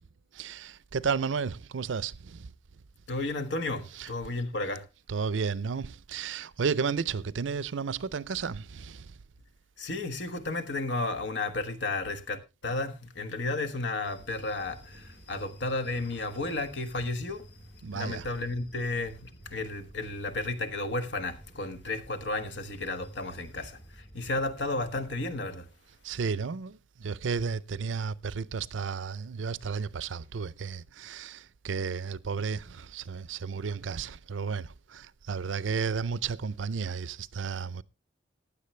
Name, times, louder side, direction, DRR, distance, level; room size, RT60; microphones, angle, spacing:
voice 1, 0.3-2.5 3.9-4.1 5.1-9.2 17.8-18.3 26.0-37.8, right 5 dB, 85° right, 0.5 m, -33 dB
voice 2, 3.1-4.8 9.8-17.4 17.9-25.7, left 2 dB, 65° left, 1.4 m, -33 dB
sound 1, 14.0-25.4, equal, 50° left, 3.0 m, -52 dB
15.0 x 10.0 x 3.2 m
head